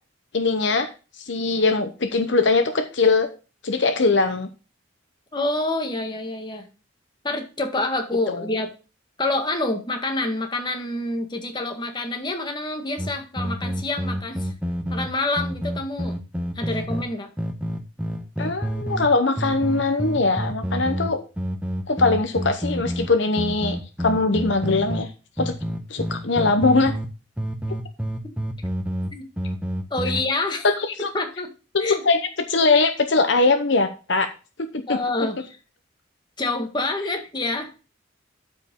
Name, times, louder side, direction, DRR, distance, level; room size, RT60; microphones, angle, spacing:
voice 1, 0.3-0.9 1.2-3.3 3.6-4.5 8.3-8.5 18.4-21.2 21.9-25.1 25.4-25.5 25.9-26.9 30.6-31.1 31.7-32.2 32.5-34.3 34.6-35.0, left 3 dB, 60° left, 8 dB, 0.9 m, -21 dB
voice 2, 5.3-6.7 7.2-8.7 9.2-14.5 14.9-16.2 16.5-17.3 29.1-29.2 29.9-30.7 31.1-31.5 31.8-32.0 34.9-35.6 36.4-37.8, left 2 dB, 25° left, 4 dB, 1.7 m, -27 dB
sound 1, 13.0-17.1 17.4-19.1 19.4-25.1 25.4-27.1 27.4-30.2, equal, 5° right, 1.1 m, -28 dB
12.5 x 5.1 x 3.7 m, 0.33 s
head